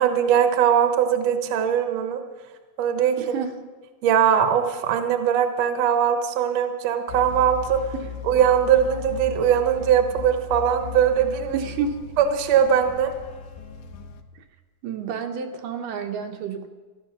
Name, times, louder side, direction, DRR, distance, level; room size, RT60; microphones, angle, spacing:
voice 1, 0.0-2.2 2.8-3.2 4.0-7.8 8.3-11.6 12.2-13.1, right 8 dB, 65° right, 8 dB, 2.1 m, -20 dB
voice 2, 3.2-3.6 7.9-8.1 11.5-12.1 14.4-14.5 14.8-16.7, right 6 dB, 85° right, 5 dB, 2.7 m, -30 dB
sound 1, 7.1-14.2, left 7 dB, 90° left, 2.6 m, -37 dB
14.0 x 12.5 x 6.7 m, 1.3 s
omnidirectional pair, 3.7 m